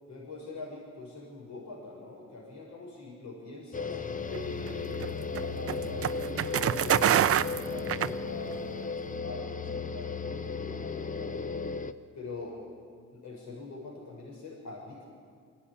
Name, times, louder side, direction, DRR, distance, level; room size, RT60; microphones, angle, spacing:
voice 1, 0.1-7.3 7.6-11.7 12.1-12.6 13.1-15.1, left 3 dB, 70° left, -2 dB, 6.5 m, -44 dB
sound 1, 3.7-11.9, left 5 dB, 25° left, 0.9 m, -35 dB
sound 2, 4.3-8.7, right 10 dB, 50° right, 0.6 m, -27 dB
22.5 x 17.0 x 9.9 m, 2.2 s
cardioid pair, 90°, 30 cm